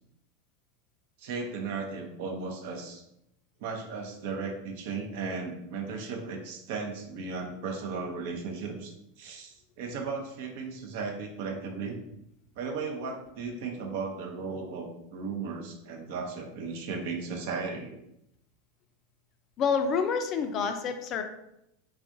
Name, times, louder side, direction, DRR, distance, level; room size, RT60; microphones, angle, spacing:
voice 1, 1.2-3.0 3.6-12.0 12.6-17.9, right 4 dB, 60° right, 2 dB, 0.6 m, -36 dB
voice 2, 19.6-21.2, left 6 dB, 40° left, 7 dB, 0.4 m, -28 dB
3.4 x 2.4 x 2.6 m, 0.81 s
hypercardioid pair, 90°, 0 cm